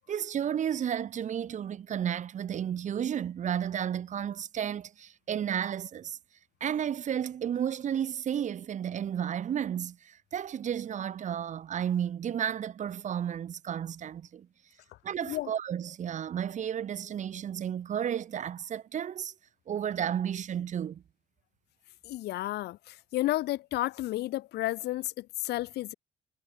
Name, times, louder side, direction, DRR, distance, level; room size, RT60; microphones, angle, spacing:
voice 1, 0.0-6.2 6.6-14.5 15.0-19.3 19.7-21.0, right 9 dB, 45° right, 1.3 m, -32 dB
voice 2, 22.0-25.9, left 16 dB, 75° left, 1.6 m, -32 dB
cardioid pair, 110°, 17 cm